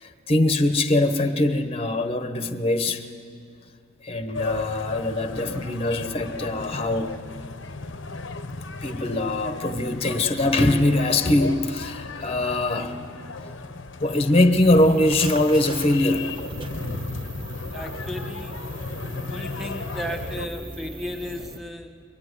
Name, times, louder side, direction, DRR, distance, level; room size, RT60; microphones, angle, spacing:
voice 1, 0.0-3.0 4.0-7.2 8.8-13.0 13.4-16.2, left 1 dB, 25° left, 8 dB, 1.0 m, -22 dB
sound 1, 4.3-20.5, left 3 dB, 60° left, 0.9 m, -35 dB
sound 2, 14.6-21.6, right 2 dB, 25° right, 1.5 m, -39 dB
voice 2, 17.7-18.6 19.3-22.0, left 1 dB, ahead, 5 dB, 1.7 m, -35 dB
23.5 x 23.5 x 9.7 m, 2.3 s
head